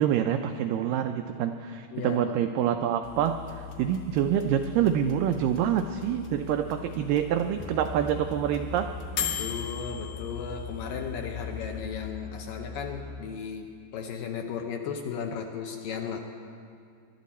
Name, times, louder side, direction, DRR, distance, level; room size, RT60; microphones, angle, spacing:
voice 1, 0.0-8.9, right 10 dB, 85° right, 6 dB, 1.9 m, -26 dB
voice 2, 1.9-2.4 9.3-16.2, left 6 dB, 75° left, 3 dB, 2.3 m, -35 dB
sound 1, 3.0-12.1, left 9 dB, 55° left, 2.1 m, -39 dB
Musical instrument, 7.6-13.2, left 3 dB, 5° left, 1.0 m, -41 dB
23.5 x 12.0 x 4.2 m, 2.4 s
omnidirectional pair, 4.5 m